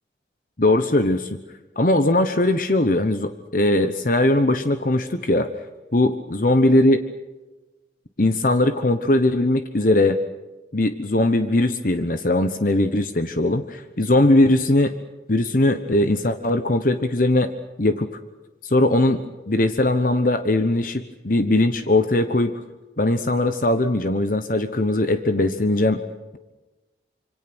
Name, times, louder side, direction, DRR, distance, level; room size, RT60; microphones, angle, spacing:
voice 1, 0.6-1.4 1.8-5.5 5.9-7.0 8.2-10.2 10.7-14.9 15.3-17.5 17.8-18.1 18.6-19.2 19.5-22.5 23.0-26.0, left 1 dB, 45° left, 9 dB, 1.1 m, -20 dB
27.0 x 25.0 x 6.2 m, 1.1 s
head